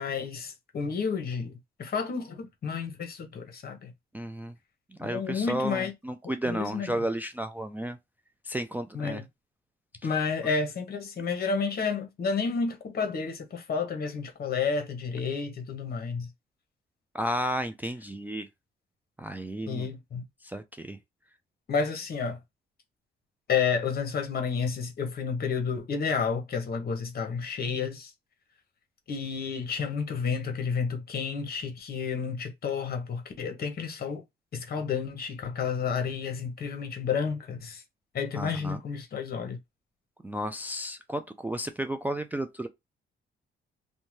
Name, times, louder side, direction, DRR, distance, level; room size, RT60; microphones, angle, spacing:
voice 1, 0.0-3.9 5.0-5.9 6.5-6.9 8.9-9.2 10.0-16.3 19.7-20.2 21.7-22.4 23.5-28.1 29.1-34.2 34.5-37.8 38.1-39.6, left 5 dB, 50° left, 0.9 m, -31 dB
voice 2, 4.1-4.5 5.0-8.0 8.4-9.2 17.1-18.5 19.2-19.9 20.4-21.0 38.3-38.8 40.2-42.7, right 1 dB, 10° right, 0.3 m, -33 dB
2.6 x 2.2 x 3.1 m
cardioid pair, 90°, 20 cm